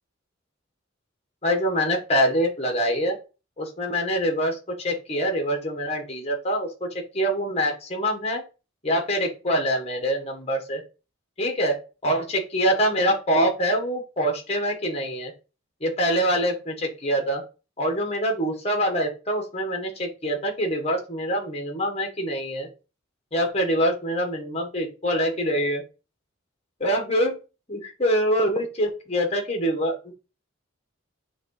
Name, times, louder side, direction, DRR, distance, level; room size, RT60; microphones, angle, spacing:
voice 1, 1.4-3.2 3.6-8.4 8.8-10.8 11.4-15.3 15.8-17.4 17.8-22.7 23.3-25.8 26.8-27.4 27.7-30.1, equal, 30° left, 3 dB, 1.5 m, -25 dB
6.2 x 3.4 x 4.8 m, 0.32 s
head